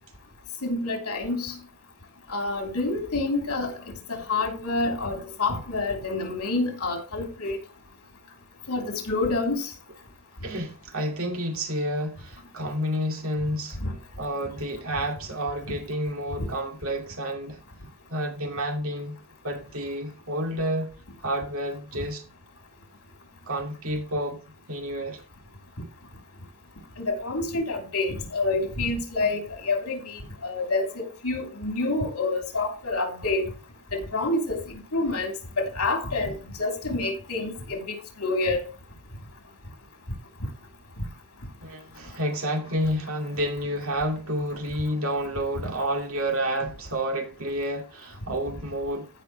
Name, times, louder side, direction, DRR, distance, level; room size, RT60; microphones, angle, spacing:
voice 1, 0.6-1.6 2.3-3.8 4.1-7.6 8.7-9.7 13.8-13.9 27.0-33.4 33.9-34.6 34.9-37.8 38.2-38.7, left 2 dB, 85° left, 3.2 m, -28 dB
voice 2, 10.4-13.8 14.2-17.6 18.1-19.2 19.4-20.9 21.2-22.2 23.5-24.4 24.7-25.2 41.6-49.1, equal, 65° right, 2.3 m, -30 dB
15.5 x 5.6 x 3.1 m
head